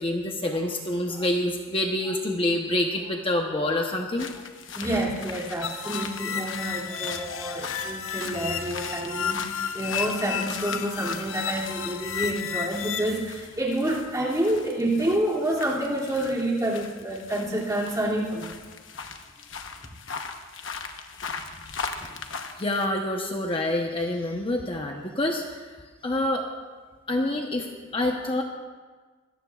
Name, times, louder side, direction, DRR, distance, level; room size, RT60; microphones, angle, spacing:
voice 1, 0.0-4.4 4.8-5.0 22.0-22.2 22.6-25.8 26.0-26.5 27.1-28.4, left 1 dB, 25° left, 2 dB, 0.9 m, -27 dB
sound 1, 4.2-22.9, left 5 dB, 70° left, 1.1 m, -40 dB
voice 2, 4.7-18.5, right 1 dB, 15° right, -4 dB, 2.6 m, -28 dB
sound 2, 5.6-13.1, left 7 dB, 90° left, 0.8 m, -32 dB
24.5 x 17.5 x 2.4 m, 1.4 s
head